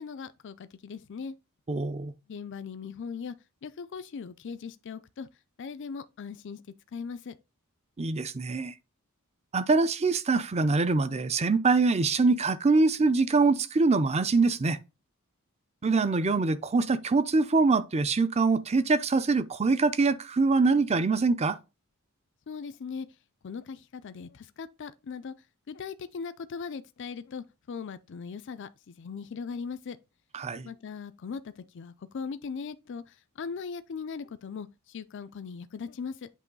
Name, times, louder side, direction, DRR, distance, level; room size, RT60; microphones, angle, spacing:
voice 1, 0.0-1.3 2.3-3.4 3.6-5.3 5.6-6.6 6.9-7.4 22.5-23.1 23.4-25.3 25.7-30.0 30.7-36.3, left 5 dB, 55° left, 0.4 m, -39 dB
voice 2, 1.7-2.1 8.0-8.7 9.5-14.8 15.8-21.6 30.3-30.7, right 3 dB, 30° right, 0.5 m, -24 dB
8.3 x 3.0 x 5.3 m
head